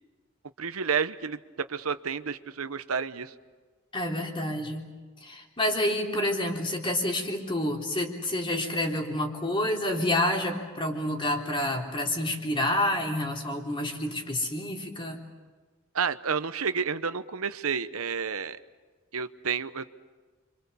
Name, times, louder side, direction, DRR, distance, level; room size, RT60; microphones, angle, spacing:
voice 1, 0.6-1.4 1.7-3.3 15.9-18.6 19.1-19.9, right 6 dB, 90° right, 12 dB, 0.9 m, -30 dB
voice 2, 3.9-4.9 5.2-15.2, left 1 dB, 25° left, 1 dB, 3.7 m, -28 dB
30.0 x 25.5 x 7.0 m, 1.4 s
head